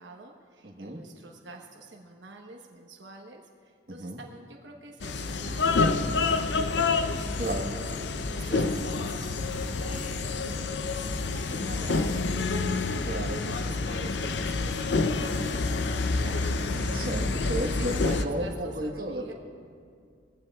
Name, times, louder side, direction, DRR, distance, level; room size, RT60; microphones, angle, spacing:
voice 1, 0.0-13.1 13.4-19.3, right 2 dB, 75° right, 1 dB, 1.1 m, -47 dB
voice 2, 0.6-1.0 4.0-4.2 7.4-7.7 8.5-8.7 13.1-13.4 16.7-19.3, right 1 dB, 50° right, 1 dB, 1.3 m, -33 dB
sound 1, 5.0-18.2, left 3 dB, 70° left, 0.6 m, -28 dB
21.5 x 15.5 x 2.4 m, 2.3 s
head